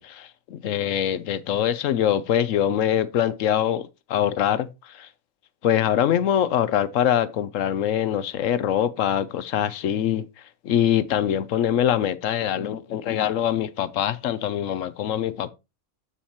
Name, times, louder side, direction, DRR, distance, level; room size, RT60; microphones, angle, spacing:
voice 1, 0.0-5.1 5.6-10.3 10.6-15.5, left 10 dB, 70° left, 1.0 m, -23 dB
8.8 x 7.1 x 2.9 m
omnidirectional pair, 1.4 m